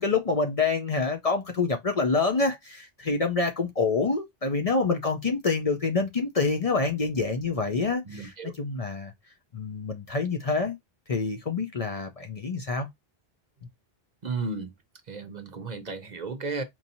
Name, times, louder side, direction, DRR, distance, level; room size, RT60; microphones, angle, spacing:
voice 1, 0.0-9.1 9.5-10.8 11.1-12.9, left 4 dB, 40° left, 0.6 m, -27 dB
voice 2, 8.0-8.5 14.2-14.7 15.1-16.6, right 4 dB, 50° right, 0.7 m, -34 dB
4.5 x 2.7 x 2.6 m
omnidirectional pair, 1.0 m